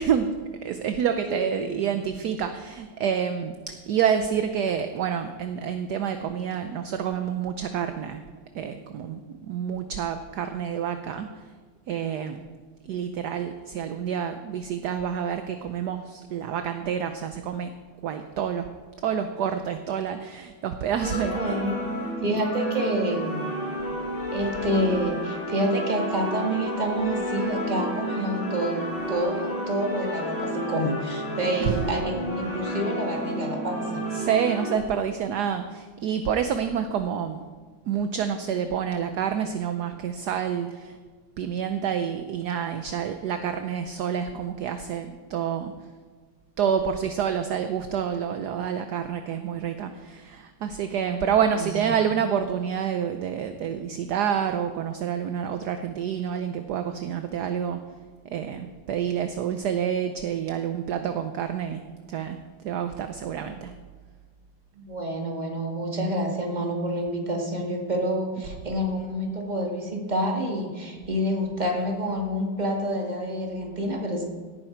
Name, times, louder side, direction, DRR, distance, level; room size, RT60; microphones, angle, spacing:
voice 1, 0.0-8.2 8.5-11.4 11.9-12.4 12.8-17.7 18.0-18.7 19.0-21.6 22.3-22.4 31.4-31.9 34.1-37.4 37.9-41.0 41.4-45.7 46.6-57.8 58.2-61.8 62.1-62.4 62.6-63.7 68.4-68.5, right 8 dB, 65° right, 8 dB, 1.1 m, -28 dB
voice 2, 1.3-1.7 21.0-21.8 22.2-23.5 24.3-34.0 51.5-51.7 64.8-74.2, equal, 20° right, 1 dB, 2.1 m, -28 dB
sound 1, 21.0-34.7, equal, 75° left, 5.9 m, -31 dB
17.5 x 10.0 x 4.5 m, 1.5 s
omnidirectional pair, 2.3 m